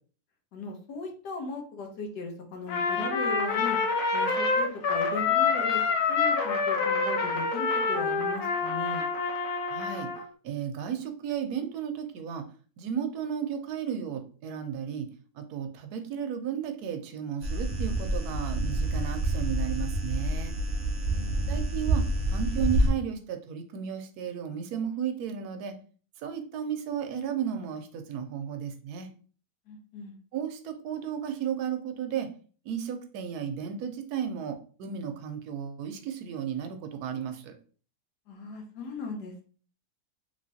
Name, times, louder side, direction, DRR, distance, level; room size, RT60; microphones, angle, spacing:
voice 1, 0.5-3.8 4.1-5.8 6.1-9.1 21.1-21.6 29.7-30.2 38.3-39.4, left 3 dB, 90° left, 2 dB, 1.4 m, -38 dB
Trumpet, 2.7-10.2, left 4 dB, 65° left, 1.1 m, -27 dB
voice 2, 9.7-10.1 10.4-12.5 12.8-15.1 15.3-20.5 21.5-22.0 22.3-25.7 26.2-29.1 30.3-32.3 32.6-37.5, right 8 dB, 75° right, 7 dB, 1.1 m, -34 dB
sound 1, 17.4-22.9, right 1 dB, 50° right, 0.4 m, -28 dB
3.3 x 3.1 x 2.6 m, 0.41 s
omnidirectional pair, 1.7 m